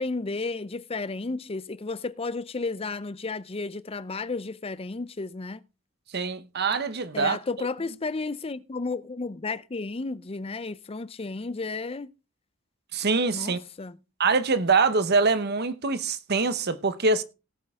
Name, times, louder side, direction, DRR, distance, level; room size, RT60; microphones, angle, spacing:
voice 1, 0.0-5.6 7.1-12.1 13.3-14.0, left 3 dB, 25° left, 0.5 m, -33 dB
voice 2, 6.1-7.4 12.9-13.6 14.2-17.2, right 4 dB, 50° right, 1.0 m, -24 dB
18.0 x 6.6 x 3.6 m
head